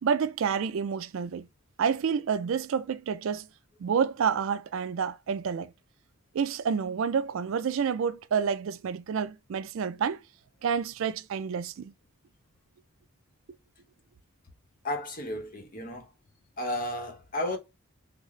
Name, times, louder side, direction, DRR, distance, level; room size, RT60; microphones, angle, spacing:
voice 1, 0.0-1.5 1.8-3.5 3.8-5.7 6.3-10.2 10.6-11.9, right 6 dB, 65° right, 0.3 m, -29 dB
voice 2, 14.8-16.1 16.6-17.6, left 1 dB, 40° left, 0.8 m, -33 dB
3.9 x 2.0 x 3.1 m
head